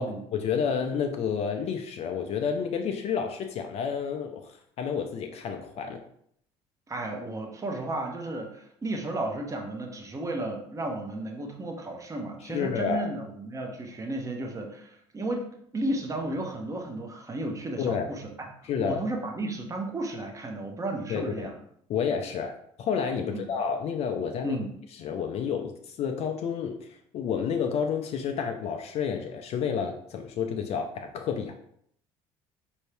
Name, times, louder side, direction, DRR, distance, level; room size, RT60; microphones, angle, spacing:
voice 1, 0.0-6.0 12.4-13.1 17.8-18.1 18.6-19.0 21.1-21.5 21.9-24.6 25.0-31.5, left 7 dB, 50° left, 4 dB, 0.5 m, -30 dB
voice 2, 6.9-18.5 18.8-21.5 23.2-23.4 24.4-24.7, right 2 dB, 25° right, 3 dB, 0.9 m, -33 dB
4.4 x 2.7 x 3.3 m, 0.69 s
supercardioid pair, 85°, 13 cm